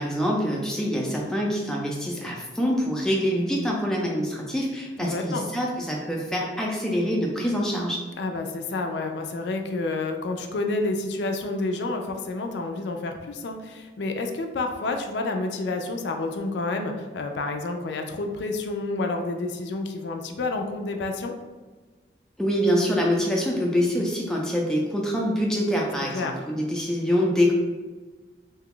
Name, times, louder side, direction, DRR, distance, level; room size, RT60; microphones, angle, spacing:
voice 1, 0.0-8.0 22.4-27.5, equal, 5° left, -2 dB, 0.4 m, -25 dB
voice 2, 5.0-5.5 8.2-21.3 26.1-26.3, left 2 dB, 75° left, 4 dB, 0.4 m, -29 dB
2.8 x 2.2 x 3.7 m, 1.3 s
head